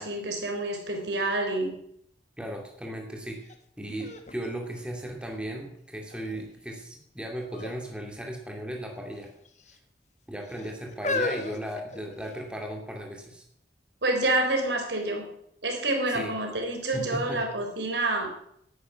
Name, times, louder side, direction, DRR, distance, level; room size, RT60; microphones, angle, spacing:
voice 1, 0.0-1.8 14.0-15.3 15.6-18.3, right 2 dB, 80° right, 3 dB, 3.9 m, -28 dB
voice 2, 2.4-3.4 3.8-9.3 10.3-13.4 16.1-16.4 16.9-17.4, right 1 dB, 5° right, 1 dB, 2.4 m, -36 dB
sound 1, 3.4-3.5 4.0-5.5 6.1-6.6 7.4-7.8 8.1-8.2 9.1-9.8 10.5-12.5 13.3-13.4, left 3 dB, 40° left, 1.5 m, -35 dB
11.0 x 10.0 x 9.6 m, 0.73 s
head